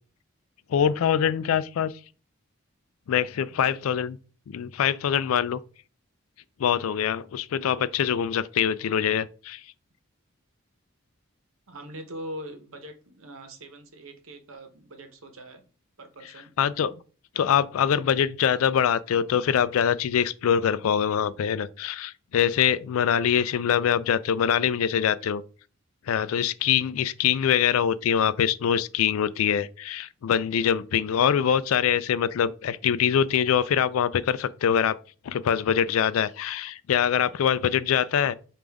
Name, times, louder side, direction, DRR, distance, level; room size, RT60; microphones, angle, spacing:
voice 1, 0.7-1.9 3.1-4.2 4.5-5.6 6.6-9.6 16.6-16.9 17.4-25.4 26.1-35.0 35.2-38.4, left 8 dB, 85° left, 0.3 m, -24 dB
voice 2, 3.7-4.1 7.5-7.7 11.7-15.6 16.0-16.5, right 1 dB, 75° right, 0.9 m, -42 dB
5.1 x 2.5 x 3.4 m
head